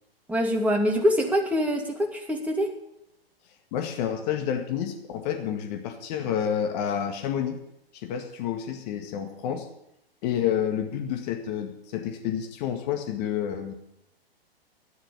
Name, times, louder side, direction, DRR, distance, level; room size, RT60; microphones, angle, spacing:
voice 1, 0.3-2.7, equal, 5° right, 1 dB, 2.5 m, -24 dB
voice 2, 3.7-7.6 7.9-9.7 10.2-13.7, left 9 dB, 45° left, 5 dB, 2.0 m, -29 dB
13.5 x 10.5 x 7.0 m, 0.80 s
hypercardioid pair, 115°, 30 cm